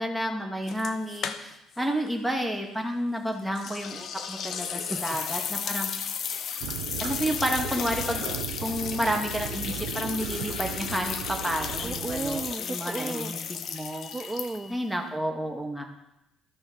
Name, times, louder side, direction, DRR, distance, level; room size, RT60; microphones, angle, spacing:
voice 1, 0.0-5.9 7.0-8.3 8.6-14.1 14.7-15.8, equal, ahead, 1 dB, 2.0 m, -31 dB
sound 1, 0.7-1.8 2.1-2.2 3.5-14.8, left 7 dB, 55° left, 0.7 m, -34 dB
sound 2, 5.9-13.6, left 2 dB, 90° left, 1.9 m, -53 dB
sound 3, 6.6-12.5, right 12 dB, 75° right, 0.4 m, -37 dB
voice 2, 11.8-13.3 14.1-14.8, right 3 dB, 20° right, 7 dB, 0.6 m, -34 dB
12.5 x 5.5 x 4.6 m, 0.88 s
hypercardioid pair, 55°, 0 cm